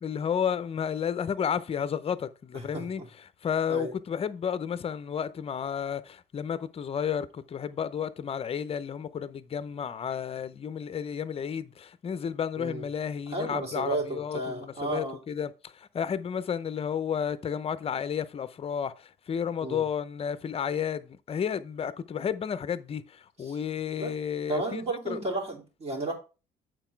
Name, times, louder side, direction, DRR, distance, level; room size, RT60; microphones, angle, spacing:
voice 1, 0.0-3.0 3.4-25.2, left 8 dB, 35° left, 0.6 m, -32 dB
voice 2, 2.5-2.9 3.7-3.9 12.6-12.8 13.3-15.2 19.6-19.8 23.5-23.6 24.0-24.1 24.5-26.1, right 2 dB, 35° right, 3.4 m, -33 dB
8.0 x 4.6 x 4.5 m
cardioid pair, 110°, 17 cm